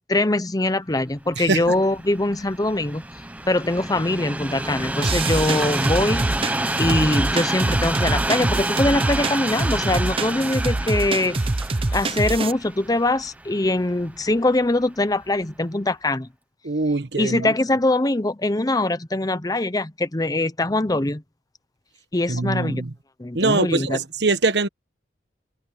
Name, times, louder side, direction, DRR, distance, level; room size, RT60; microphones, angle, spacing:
voice 1, 0.1-3.0 3.5-6.2 6.8-11.4 11.9-16.3 17.2-21.2 22.1-22.8 23.2-24.0, left 2 dB, 20° left, 0.8 m, -22 dB
Train, 1.3-14.5 15.2-15.3, right 1 dB, 10° right, 1.0 m, -28 dB
sound 1, 5.0-12.5, right 2 dB, 30° right, 0.7 m, -25 dB
voice 2, 16.6-17.5 22.3-22.9 23.3-24.7, right 3 dB, 60° right, 1.3 m, -22 dB
head